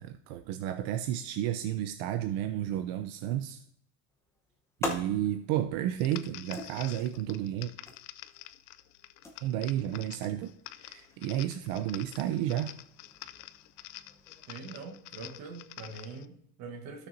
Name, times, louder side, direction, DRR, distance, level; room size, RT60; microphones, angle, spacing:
voice 1, 0.0-3.6 4.8-7.7 9.4-12.7, right 12 dB, 80° right, 0.6 m, -32 dB
sound 1, 4.1-14.5, left 2 dB, 5° left, 0.8 m, -45 dB
sound 2, 6.0-16.3, left 15 dB, 70° left, 0.5 m, -48 dB
voice 2, 14.5-17.1, right 4 dB, 50° right, 1.2 m, -43 dB
15.0 x 6.5 x 2.6 m
cardioid pair, 170°, 36 cm